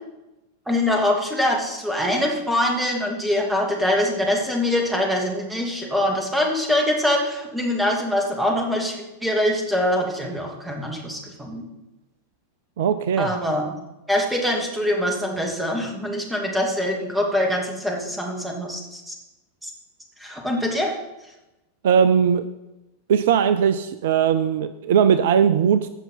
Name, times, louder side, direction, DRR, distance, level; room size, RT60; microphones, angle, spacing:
voice 1, 0.7-11.6 13.2-13.6 14.1-19.1 19.6-19.7 20.2-20.9, left 1 dB, 5° right, 0 dB, 2.7 m, -23 dB
voice 2, 12.8-13.4 21.8-22.5 23.1-25.9, right 8 dB, 55° right, 13 dB, 0.4 m, -19 dB
16.0 x 5.8 x 5.8 m, 0.98 s
figure-of-eight pair, 90°, 0 cm